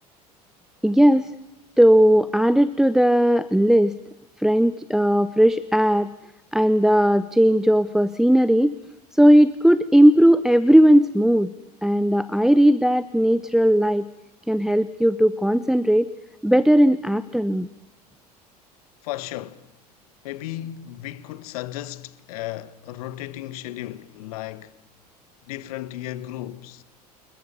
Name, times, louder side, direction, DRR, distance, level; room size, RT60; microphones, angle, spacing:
voice 1, 0.8-1.3 1.8-4.0 4.4-6.1 6.5-8.7 9.1-11.5 11.8-14.1 14.5-16.1 16.4-17.7, equal, ahead, 0.9 m, -17 dB
voice 2, 19.0-19.7 20.2-24.8 25.5-26.8, left 14 dB, 65° left, 1.5 m, -35 dB
28.5 x 21.5 x 7.0 m
figure-of-eight pair, 70°, 20 cm